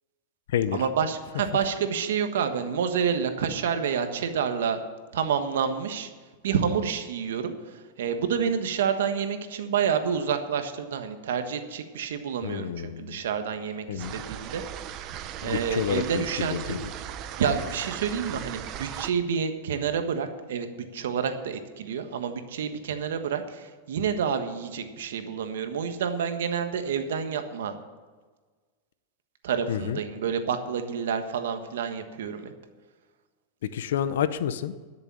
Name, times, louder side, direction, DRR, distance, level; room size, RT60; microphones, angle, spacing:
voice 1, 0.7-4.8 5.1-6.1 6.4-14.6 15.1-16.8 17.4-20.7 20.9-27.8 29.4-32.5, right 7 dB, 85° right, 8 dB, 1.3 m, -28 dB
voice 2, 12.4-13.2 13.9-14.2 15.4-16.8 29.7-30.0 33.6-34.7, left 9 dB, 80° left, 13 dB, 0.8 m, -29 dB
sound 1, 14.0-19.1, right 10 dB, 40° right, 0.8 m, -38 dB
12.5 x 6.8 x 8.7 m, 1.4 s
supercardioid pair, 140°, 0 cm